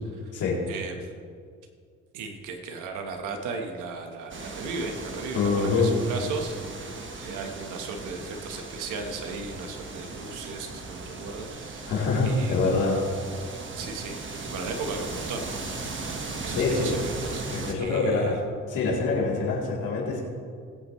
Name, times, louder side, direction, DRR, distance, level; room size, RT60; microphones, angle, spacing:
voice 1, 0.7-1.2 2.1-12.6 13.8-16.1 16.4-17.4 17.8-18.3, right 4 dB, 90° right, 4 dB, 1.4 m, -36 dB
sound 1, 4.3-17.7, right 3 dB, 40° right, 1.5 m, -37 dB
voice 2, 5.3-5.9 11.8-13.0 16.5-17.0 17.5-18.4 18.7-20.2, left 3 dB, 85° left, -4 dB, 3.3 m, -25 dB
20.5 x 8.6 x 3.2 m, 2.2 s
cardioid pair, 90°, 30 cm